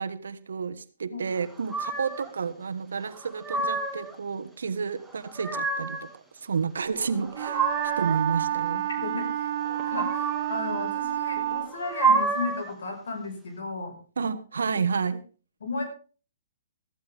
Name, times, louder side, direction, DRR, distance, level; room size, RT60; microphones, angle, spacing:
voice 1, 0.0-6.1 6.4-7.7 8.0-8.8 14.2-15.2, right 5 dB, 85° right, 12 dB, 1.4 m, -30 dB
sound 1, 1.7-2.3 3.1-4.1 5.1-6.1 7.0-8.2 9.7-10.6 11.7-12.7, right 4 dB, 5° right, 2.1 m, -28 dB
Wind instrument woodwind instrument, 7.3-11.8, right 12 dB, 55° right, 2.2 m, -29 dB
voice 2, 8.7-9.5 9.8-13.9 15.6-15.8, left 3 dB, 80° left, 5 dB, 5.4 m, -34 dB
14.5 x 14.0 x 3.6 m, 0.37 s
hypercardioid pair, 140°, 0 cm